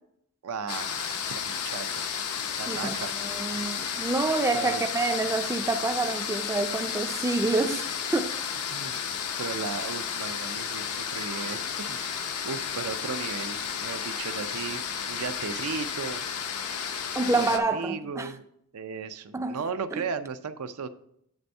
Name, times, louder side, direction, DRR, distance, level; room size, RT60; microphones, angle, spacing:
voice 1, 0.4-2.1 2.6-3.1 4.5-4.8 8.7-8.9 9.4-16.2 17.3-18.4 18.7-20.9, right 5 dB, 75° right, 0.5 m, -36 dB
sound 1, 0.7-17.6, left 7 dB, 85° left, 0.7 m, -32 dB
voice 2, 3.2-7.8 8.1-8.3 17.2-18.3 19.3-19.6 19.9-20.0, right 3 dB, 15° right, 0.4 m, -27 dB
8.0 x 3.4 x 5.3 m
head